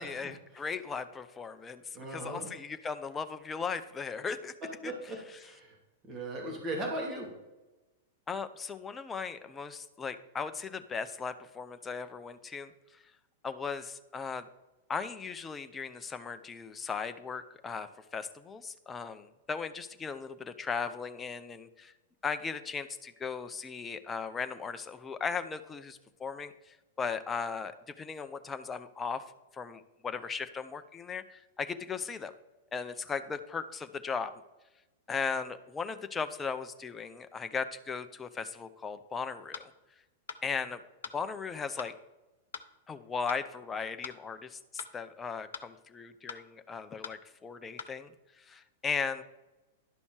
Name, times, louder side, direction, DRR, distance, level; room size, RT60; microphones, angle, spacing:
voice 1, 0.0-4.5 4.8-4.9 8.3-13.1 13.4-14.5 14.9-21.9 22.2-29.2 29.5-32.3 32.7-34.4 35.1-39.7 40.4-40.8 41.1-41.9 42.9-49.2, left 5 dB, 15° left, 10 dB, 0.6 m, -37 dB
voice 2, 1.9-2.5 4.8-5.8 6.1-7.3, right 1 dB, 25° right, 0 dB, 2.6 m, -38 dB
sound 1, 39.5-39.7 40.3-40.4 41.0-41.2 41.8-41.9 42.5-42.7 43.3-43.4 44.0-44.2 44.8-44.9 45.5-45.7 46.3-46.4 47.0-47.2 47.8-47.9, left 6 dB, 65° left, 0.5 m, -42 dB
11.5 x 5.3 x 4.7 m, 1.1 s
figure-of-eight pair, 100°, 0 cm